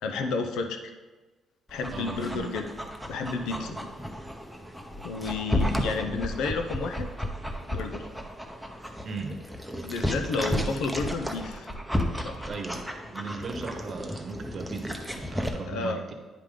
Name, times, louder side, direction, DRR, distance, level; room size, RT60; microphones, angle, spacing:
voice 1, 0.0-0.8 1.7-2.7 3.1-3.8 5.0-7.1 7.7-8.1 9.8-11.7 12.2-12.5 15.6-16.0, left 4 dB, 85° left, 5 dB, 0.7 m, -31 dB
Dog, 1.7-15.5, equal, ahead, 0.8 m, -33 dB
voice 2, 1.9-2.5 3.5-3.8 9.0-9.5 12.4-16.1, right 4 dB, 45° right, 5 dB, 1.0 m, -38 dB
9.4 x 4.9 x 3.7 m, 1.3 s
cardioid pair, 90°, 0 cm